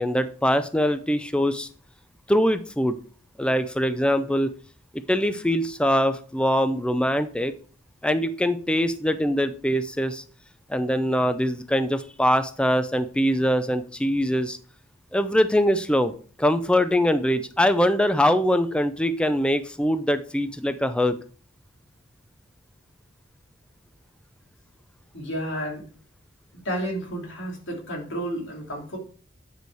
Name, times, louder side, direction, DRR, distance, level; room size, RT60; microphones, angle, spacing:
voice 1, 0.0-1.7 2.3-3.0 3.4-4.5 5.1-7.5 8.0-10.2 10.7-14.6 15.1-16.1 16.4-21.1, equal, 5° left, 10 dB, 0.4 m, -23 dB
voice 2, 25.1-25.8 26.6-29.0, right 1 dB, 65° left, -1 dB, 2.9 m, -31 dB
9.5 x 4.6 x 4.6 m, 0.41 s
head